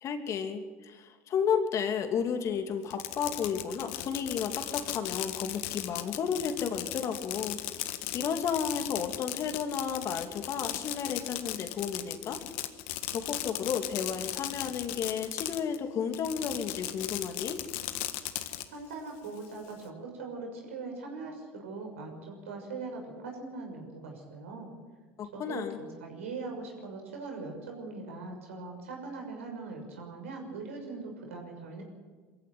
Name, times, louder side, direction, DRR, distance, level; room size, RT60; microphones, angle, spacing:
voice 1, 0.0-12.4 13.1-17.6 25.2-25.8, left 7 dB, 45° left, 6 dB, 2.8 m, -33 dB
Fireworks, 2.8-15.8 16.1-18.6, left 15 dB, 70° left, 1.6 m, -37 dB
voice 2, 18.7-24.7 25.3-31.8, right 3 dB, 90° right, 1 dB, 6.6 m, -41 dB
23.0 x 15.0 x 9.5 m, 1.4 s
hypercardioid pair, 85°, 7 cm